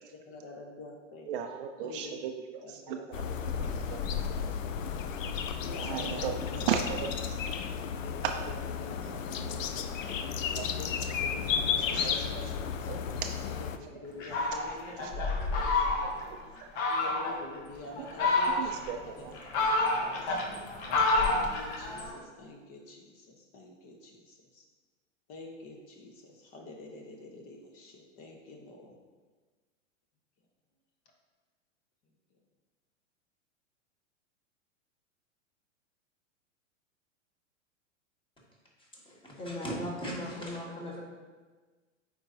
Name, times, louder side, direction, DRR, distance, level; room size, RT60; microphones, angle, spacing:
voice 1, 0.3-1.3 1.8-2.2 2.6-3.1 3.5-4.8 5.6-6.6 7.5-12.7 13.4-16.3 16.9-19.7 20.0-20.5 21.0-24.6 25.3-28.9, left 2 dB, 35° left, 1 dB, 1.1 m, -47 dB
voice 2, 1.3-3.0 3.4-4.3 5.8-6.3 6.6-7.4 10.3-10.7 11.8-12.4 12.8-13.0 15.8-15.9 16.3-16.4 16.7-16.8 18.6-19.3, right 8 dB, 45° right, 5 dB, 0.5 m, -36 dB
sound 1, 3.1-13.8, left 7 dB, 80° left, 0.6 m, -33 dB
Fowl, 14.2-16.3 16.8-17.4 18.0-18.9 19.3-22.1, left 2 dB, 55° left, 1.3 m, -28 dB
voice 3, 38.8-41.0, equal, 15° left, -3 dB, 1.6 m, -38 dB
8.6 x 4.5 x 2.8 m, 1.4 s
hypercardioid pair, 105°, 38 cm